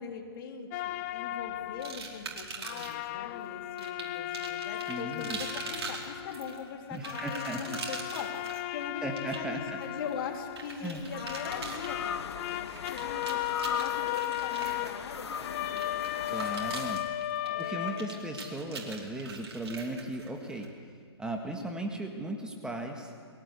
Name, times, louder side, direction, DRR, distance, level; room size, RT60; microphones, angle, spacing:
voice 1, 0.0-16.5 17.4-18.3, left 6 dB, 55° left, 2 dB, 3.6 m, -42 dB
sound 1, 0.7-2.4 2.6-6.8 7.0-10.9 11.1-18.7, left 15 dB, 35° left, 0.6 m, -36 dB
sound 2, 1.8-3.1 3.8-20.6, right 4 dB, 70° right, 4.8 m, -43 dB
voice 2, 4.9-5.4 6.9-7.8 9.0-9.8 10.8-11.0 16.3-17.0 17.6-20.7 21.2-23.1, right 1 dB, 5° right, 2 dB, 1.7 m, -37 dB
sound 3, 6.1-7.6 9.4-17.0, left 5 dB, 75° left, 1.5 m, -41 dB
22.5 x 17.5 x 8.3 m, 2.2 s
hypercardioid pair, 140°, 14 cm